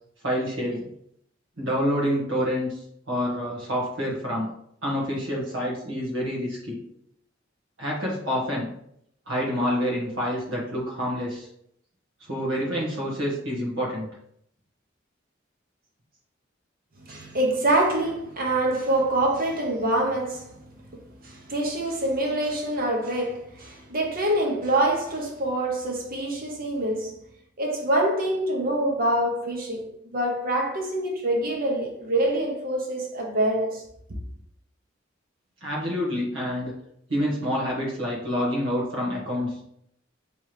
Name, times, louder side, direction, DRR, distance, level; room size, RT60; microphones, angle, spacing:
voice 1, 0.2-0.9 1.6-4.5 4.8-6.8 7.8-8.7 9.3-11.5 12.2-14.1 35.6-36.7 37.1-39.7, equal, 90° right, 1.4 m, -27 dB
voice 2, 17.0-27.1 27.6-33.8, right 1 dB, 50° right, 1.0 m, -25 dB
3.5 x 3.0 x 4.8 m
head